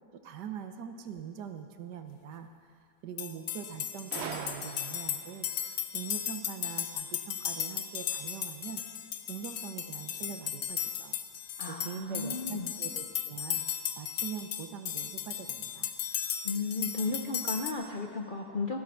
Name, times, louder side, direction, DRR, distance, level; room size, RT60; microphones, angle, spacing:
voice 1, 0.1-2.5 3.0-8.8 9.3-11.2 11.7-13.6 14.0-15.9, right 8 dB, 75° right, 7 dB, 1.5 m, -43 dB
sound 1, 3.2-17.7, left 10 dB, 70° left, 1.1 m, -36 dB
Gunshot gunfire, 4.1-5.3, right 6 dB, 55° right, 0.7 m, -40 dB
voice 2, 11.6-12.7 16.4-18.8, left 3 dB, 45° left, 2 dB, 0.7 m, -34 dB
15.5 x 10.5 x 6.4 m, 2.1 s
omnidirectional pair, 1.8 m